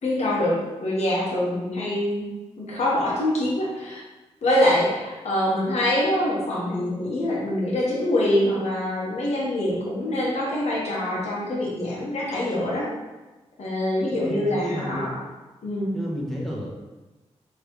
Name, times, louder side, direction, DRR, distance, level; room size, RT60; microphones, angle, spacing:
voice 1, 0.0-2.3 2.6-4.0 4.4-12.9 13.6-15.2 15.6-15.9, left 1 dB, 70° left, -5 dB, 1.3 m, -24 dB
voice 2, 14.0-15.1 15.9-16.7, equal, ahead, -3 dB, 1.1 m, -32 dB
4.3 x 3.3 x 3.1 m, 1.1 s
cardioid pair, 80°, 12 cm